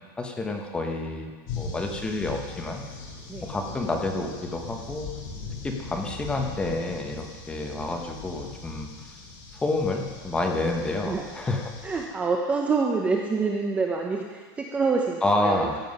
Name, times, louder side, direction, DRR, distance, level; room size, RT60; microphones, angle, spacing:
voice 1, 0.2-2.8 3.4-5.1 5.6-8.9 9.6-11.7 15.2-15.7, left 2 dB, 10° left, 2 dB, 1.0 m, -29 dB
sound 1, 1.5-12.1, left 4 dB, 50° left, 2.5 m, -40 dB
voice 2, 10.8-11.3 11.8-15.8, right 4 dB, 10° right, 1 dB, 0.6 m, -27 dB
14.5 x 7.6 x 5.4 m, 1.5 s
supercardioid pair, 165°, 12 cm